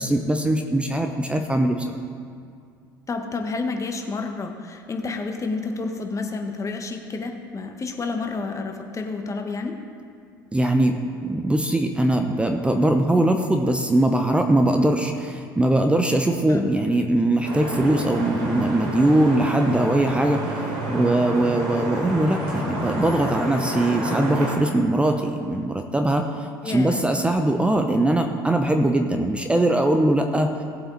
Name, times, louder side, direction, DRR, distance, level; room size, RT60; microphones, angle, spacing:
voice 1, 0.0-1.8 10.5-30.5, right 1 dB, 10° right, 5 dB, 0.9 m, -21 dB
voice 2, 3.1-9.8 16.5-16.7 26.6-27.0, left 3 dB, 30° left, 4 dB, 1.4 m, -29 dB
Vehicle horn car horn honking / Traffic noise roadway noise, 17.4-24.6, right 1 dB, 60° right, 3.5 m, -29 dB
18.0 x 7.7 x 4.1 m, 2.3 s
hypercardioid pair, 65°, 11 cm